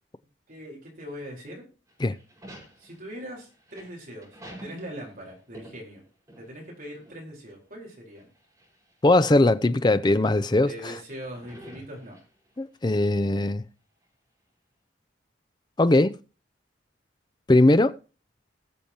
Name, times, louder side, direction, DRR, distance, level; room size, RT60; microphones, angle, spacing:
voice 1, 0.5-1.6 2.8-6.0 6.4-8.3 10.6-12.2, equal, 45° right, 4.3 m, -41 dB
sound 1, 1.9-6.7 7.0-7.1 8.1-8.9 9.6-9.7 11.1-12.6, right 1 dB, 20° right, 5.4 m, -48 dB
voice 2, 9.0-10.9 12.6-13.6 15.8-16.2 17.5-18.0, left 2 dB, 20° left, 0.5 m, -20 dB
20.5 x 7.0 x 2.9 m
head